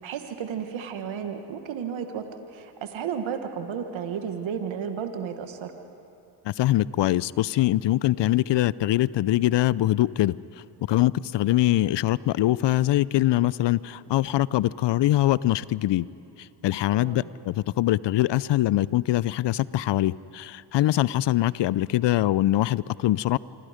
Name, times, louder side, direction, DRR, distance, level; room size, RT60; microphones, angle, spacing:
voice 1, 0.0-5.7 16.9-17.3, right 7 dB, 70° right, 6 dB, 1.7 m, -33 dB
voice 2, 6.4-10.4 10.9-16.1 16.4-23.4, left 15 dB, 60° left, 20 dB, 0.6 m, -23 dB
26.0 x 25.5 x 5.1 m, 2.7 s
supercardioid pair, 50°, 49 cm